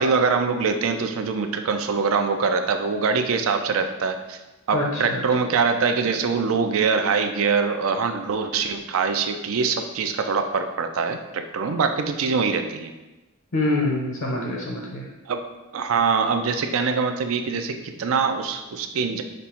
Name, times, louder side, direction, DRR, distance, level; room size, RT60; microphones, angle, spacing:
voice 1, 0.0-4.4 4.7-12.9 15.3-15.4 15.7-19.2, right 5 dB, 90° right, 7 dB, 0.4 m, -23 dB
voice 2, 4.7-5.2 13.5-15.0, left 2 dB, 70° left, -2 dB, 0.8 m, -25 dB
5.2 x 2.1 x 4.3 m, 1.1 s
head